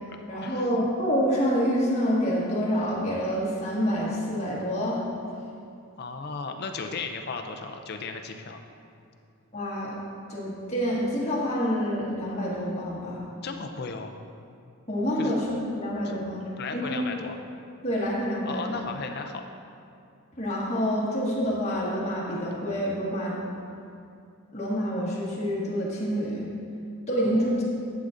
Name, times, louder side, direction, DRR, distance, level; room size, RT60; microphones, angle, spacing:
voice 1, 0.3-5.0 9.5-9.9 10.3-13.2 14.9-17.0 17.8-18.8 20.4-23.4 24.5-26.5 27.1-27.6, equal, 30° left, -7 dB, 1.7 m, -27 dB
voice 2, 6.0-8.6 13.4-14.2 15.2-15.3 16.0-16.2 16.6-17.4 18.4-19.4 27.2-27.6, left 4 dB, 45° left, 5 dB, 0.5 m, -35 dB
11.5 x 7.5 x 2.6 m, 2.5 s
head